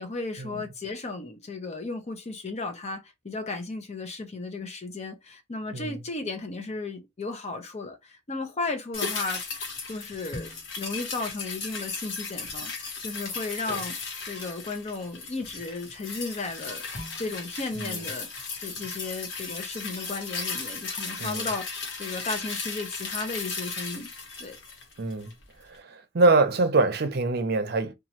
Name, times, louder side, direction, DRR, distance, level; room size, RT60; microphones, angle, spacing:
voice 1, 0.0-9.4 9.9-14.0 14.2-16.8 17.2-24.1 24.4-24.6, left 3 dB, 35° left, 0.6 m, -35 dB
sound 1, 8.9-25.4 25.7-25.8, left 4 dB, 80° left, 1.1 m, -36 dB
voice 2, 25.0-25.3 25.7-27.9, right 3 dB, 55° right, 0.6 m, -24 dB
3.0 x 2.4 x 2.8 m
head